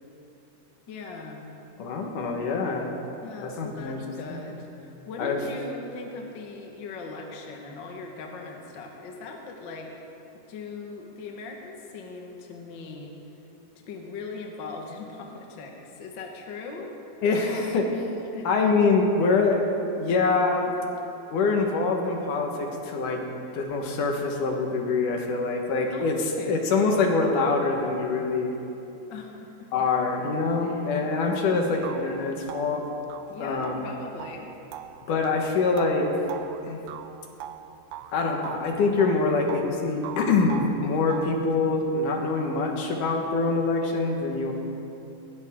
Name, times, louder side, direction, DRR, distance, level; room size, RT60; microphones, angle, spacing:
voice 1, 0.9-1.4 3.2-9.9 10.5-13.1 13.9-16.9 18.3-18.5 25.9-26.6 29.1-29.7 30.6-30.8 31.5-31.9 33.3-34.5, left 3 dB, 45° left, 1 dB, 1.6 m, -40 dB
voice 2, 1.8-2.9 3.4-4.0 4.3-4.4 5.2-5.4 17.2-18.1 18.4-19.6 20.0-20.7 21.3-23.2 23.5-28.5 29.7-32.8 33.4-33.8 35.1-36.3 36.6-36.8 38.1-44.5, left 3 dB, 70° left, 2 dB, 2.9 m, -25 dB
sound 1, 31.3-31.4 31.8-38.1 38.4-39.7 40.0-41.4, right 10 dB, 75° right, 1.9 m, -41 dB
21.0 x 17.0 x 3.7 m, 2.9 s
omnidirectional pair, 3.9 m